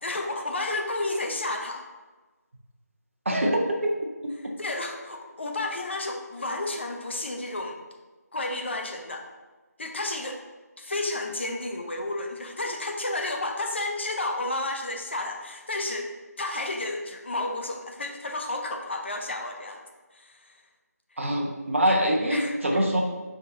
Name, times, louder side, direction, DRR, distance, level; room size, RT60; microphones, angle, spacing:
voice 1, 0.0-1.8 4.6-7.8 8.3-9.3 9.8-10.4 10.8-16.1 16.4-19.8 20.1-20.3 21.9-22.0 22.3-22.9, left 2 dB, 45° left, 3 dB, 0.8 m, -31 dB
voice 2, 3.2-3.9 21.2-23.0, equal, 50° right, 0 dB, 1.2 m, -24 dB
10.5 x 3.7 x 2.8 m, 1.2 s
figure-of-eight pair, 170°, 9 cm